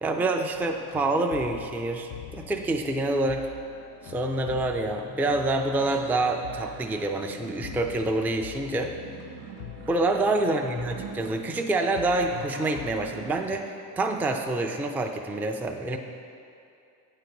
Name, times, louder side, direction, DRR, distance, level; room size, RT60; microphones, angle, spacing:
voice 1, 0.0-3.4 4.0-8.9 9.9-16.0, right 2 dB, 5° right, 3 dB, 0.3 m, -27 dB
sound 1, 0.5-13.6, left 11 dB, 75° left, 0.5 m, -45 dB
sound 2, 3.5-13.5, right 8 dB, 85° right, 0.6 m, -46 dB
9.0 x 3.9 x 4.6 m, 2.6 s
cardioid pair, 75°, 43 cm